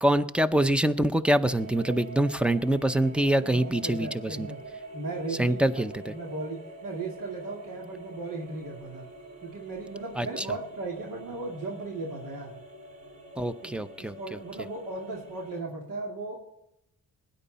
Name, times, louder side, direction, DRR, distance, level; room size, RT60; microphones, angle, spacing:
voice 1, 0.0-4.5 5.4-6.1 10.2-10.5 13.4-14.2, right 1 dB, 5° right, 12 dB, 0.6 m, -25 dB
sound 1, 1.4-15.6, right 2 dB, 55° right, 6.7 m, -46 dB
voice 2, 3.4-4.6 4.9-9.1 9.4-12.6 13.6-16.4, right 2 dB, 80° right, -1 dB, 2.6 m, -37 dB
19.0 x 10.0 x 4.1 m, 0.83 s
cardioid pair, 110°, 33 cm